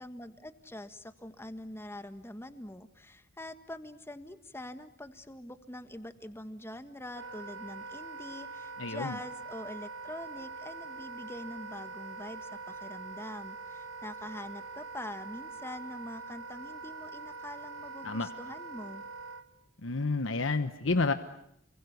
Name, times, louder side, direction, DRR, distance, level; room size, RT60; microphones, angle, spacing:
voice 1, 0.0-19.0, left 1 dB, 10° left, 10 dB, 1.6 m, -44 dB
Wind instrument woodwind instrument, 7.1-19.4, right 4 dB, 90° right, 1.8 m, -43 dB
voice 2, 8.8-9.2 18.0-18.3 19.8-21.1, left 3 dB, 70° left, 10 dB, 1.1 m, -29 dB
29.5 x 24.0 x 8.3 m, 0.73 s
head